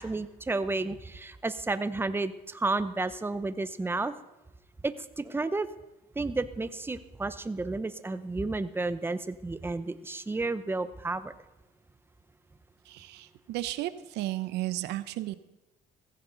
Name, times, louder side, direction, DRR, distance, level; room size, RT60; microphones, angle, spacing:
voice 1, 0.0-4.1 4.8-5.7 6.2-11.3, right 3 dB, 15° right, 13 dB, 0.8 m, -32 dB
voice 2, 12.9-15.3, right 15 dB, 90° right, 14 dB, 0.8 m, -34 dB
16.0 x 15.0 x 4.0 m, 1.0 s
cardioid pair, 110°, 17 cm